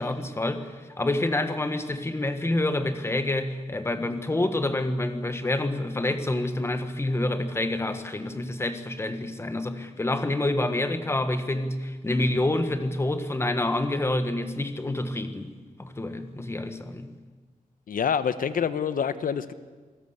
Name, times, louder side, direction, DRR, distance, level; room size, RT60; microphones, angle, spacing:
voice 1, 0.0-15.5 15.8-17.1, left 1 dB, 20° left, 9 dB, 1.5 m, -27 dB
voice 2, 17.9-19.5, left 7 dB, 85° left, 13 dB, 1.1 m, -26 dB
27.0 x 18.5 x 8.2 m, 1.4 s
wide cardioid pair, 180°, 14 cm